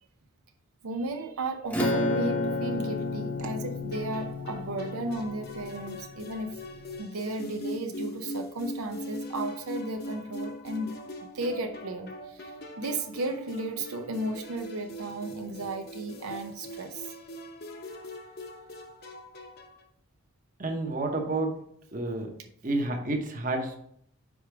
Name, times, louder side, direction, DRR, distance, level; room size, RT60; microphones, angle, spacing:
voice 1, 0.8-6.5 7.0-10.9 11.2-12.5 12.8-17.1, right 2 dB, 80° right, 4 dB, 0.6 m, -34 dB
Acoustic guitar / Strum, 1.7-6.6, equal, 5° left, 0.8 m, -34 dB
Acoustic guitar, 1.8-6.2 6.8-7.0, left 4 dB, 65° left, 0.4 m, -34 dB
sound 1, 3.9-19.8, equal, 45° left, 0.9 m, -41 dB
voice 2, 20.6-21.6 21.9-22.3 22.6-23.8, right 2 dB, 35° right, 3 dB, 1.0 m, -30 dB
5.0 x 4.9 x 4.7 m, 0.67 s
head